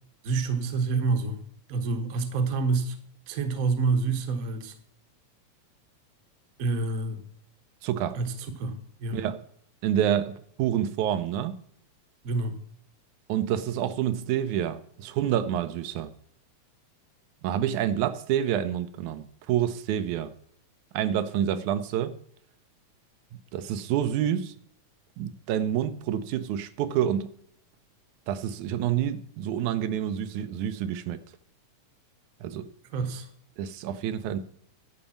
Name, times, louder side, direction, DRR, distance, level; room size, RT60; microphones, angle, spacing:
voice 1, 0.2-1.4 1.7-2.9 3.3-4.7 6.6-7.2 8.1-9.2 12.2-12.6 32.9-33.3, right 4 dB, 55° right, 0.9 m, -27 dB
voice 2, 7.8-8.2 9.1-9.4 9.8-11.6 13.3-16.1 17.4-20.3 20.9-22.2 23.5-24.5 25.2-27.3 28.3-31.2 32.4-32.7 33.6-34.4, right 10 dB, 90° right, 2.2 m, -28 dB
11.0 x 5.2 x 7.1 m
omnidirectional pair, 3.3 m